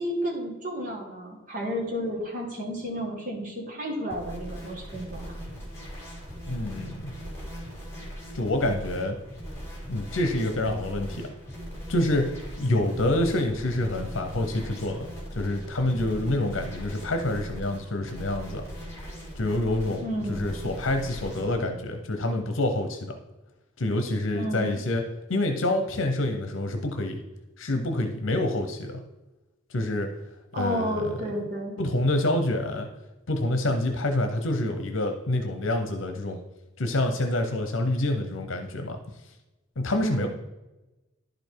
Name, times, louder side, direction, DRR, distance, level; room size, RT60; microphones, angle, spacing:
voice 1, 0.0-5.3 20.0-20.4 24.3-24.8 30.5-31.7 40.0-40.3, equal, 40° right, -1 dB, 2.0 m, -32 dB
sound 1, 4.1-21.6, equal, 15° left, 3.2 m, -39 dB
voice 2, 6.5-7.1 8.3-9.2 9.9-11.3 11.9-12.3 12.6-15.1 15.3-18.6 19.4-23.2 23.8-25.0 25.3-27.2 27.6-29.0 29.7-30.1 30.5-31.1 31.8-32.9 33.3-36.4 36.8-39.0 39.8-40.3, left 1 dB, 75° left, 5 dB, 0.9 m, -27 dB
11.0 x 5.2 x 4.6 m, 1.0 s
head